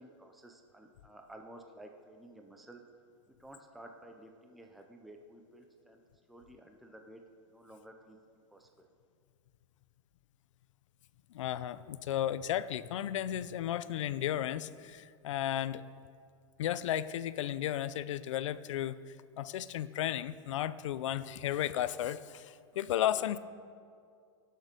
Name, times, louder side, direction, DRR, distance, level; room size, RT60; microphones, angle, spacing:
voice 1, 0.0-2.8 3.4-6.0 6.3-7.2 7.5-8.2 8.5-8.9, right 1 dB, ahead, 3 dB, 0.4 m, -53 dB
voice 2, 11.3-15.8 16.6-23.4, left 11 dB, 85° left, 16 dB, 0.5 m, -34 dB
17.5 x 6.6 x 5.2 m, 2.3 s
supercardioid pair, 165°, 16 cm